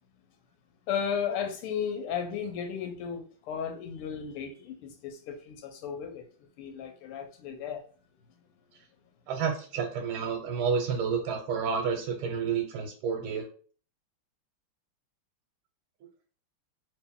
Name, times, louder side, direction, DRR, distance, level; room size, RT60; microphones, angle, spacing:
voice 1, 0.9-6.2 6.6-7.8, left 7 dB, 85° left, 5 dB, 1.6 m, -34 dB
voice 2, 9.3-13.5, right 6 dB, 85° right, 3 dB, 1.5 m, -30 dB
3.1 x 3.0 x 3.5 m, 0.42 s
omnidirectional pair, 2.4 m